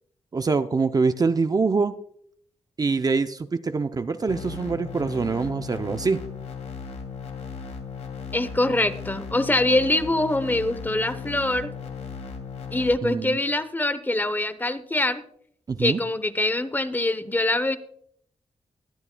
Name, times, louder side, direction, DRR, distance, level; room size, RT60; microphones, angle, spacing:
voice 1, 0.3-1.9 2.8-6.2 13.0-13.4 15.7-16.0, right 4 dB, 35° right, 10 dB, 0.5 m, -24 dB
sound 1, 4.3-12.9, left 5 dB, 80° left, 2.5 m, -37 dB
voice 2, 8.3-11.7 12.7-15.2 15.8-17.8, left 1 dB, 15° left, 13 dB, 0.8 m, -24 dB
21.0 x 9.4 x 2.2 m, 0.65 s
wide cardioid pair, 95°, 11 cm